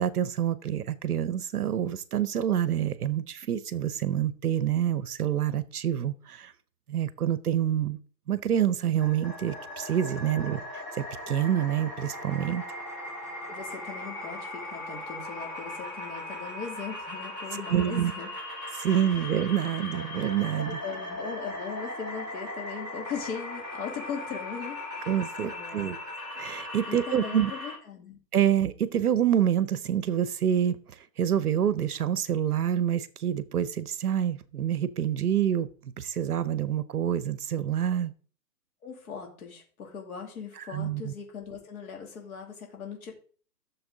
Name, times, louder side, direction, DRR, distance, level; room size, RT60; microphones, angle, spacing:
voice 1, 0.0-6.5 6.9-8.0 8.3-10.6 11.3-12.6 17.7-18.1 18.7-20.8 25.1-26.0 26.4-27.5 28.3-30.8 31.2-35.7 36.0-38.1 40.7-41.1, right 10 dB, 65° right, 0.8 m, -27 dB
sound 1, 9.0-27.7, left 1 dB, 20° left, 5.0 m, -38 dB
voice 2, 10.2-10.6 13.5-18.3 18.8-19.4 20.7-25.9 26.9-28.2 38.8-43.1, left 6 dB, 55° left, 2.8 m, -39 dB
12.0 x 7.0 x 3.9 m
hypercardioid pair, 165°, 49 cm